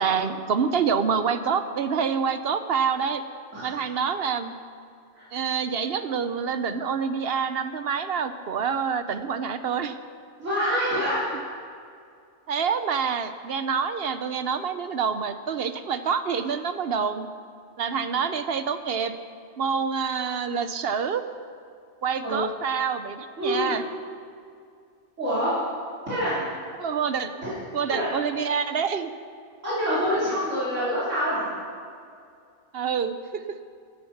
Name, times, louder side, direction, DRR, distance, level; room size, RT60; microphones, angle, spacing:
voice 1, 0.0-3.2 3.6-4.5 5.3-10.0 12.5-17.3 17.8-19.1 19.6-21.2 22.0-23.8 26.8-27.3 27.7-29.1 32.7-33.4, right 6 dB, 60° right, 10 dB, 0.8 m, -27 dB
voice 2, 10.4-11.2 22.2-22.4 23.4-23.7 25.2-25.5 26.1-26.5 27.4-27.5 27.9-28.1 29.6-31.5, equal, 85° right, -12 dB, 3.8 m, -26 dB
15.5 x 9.5 x 5.8 m, 2.3 s
omnidirectional pair, 1.2 m